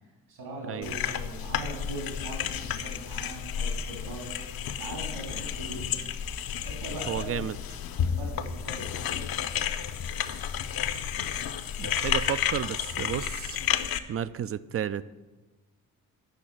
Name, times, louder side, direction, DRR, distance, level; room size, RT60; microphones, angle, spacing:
voice 1, 0.3-6.1 6.6-7.5 7.9-9.2, right 1 dB, 75° right, -2 dB, 3.9 m, -40 dB
sound 1, 0.8-14.0, left 8 dB, 50° left, 0.8 m, -31 dB
voice 2, 7.1-7.5 11.8-13.6 14.1-15.0, right 9 dB, 35° right, 16 dB, 0.4 m, -32 dB
7.8 x 6.1 x 7.7 m, 1.2 s
hypercardioid pair, 45°, 44 cm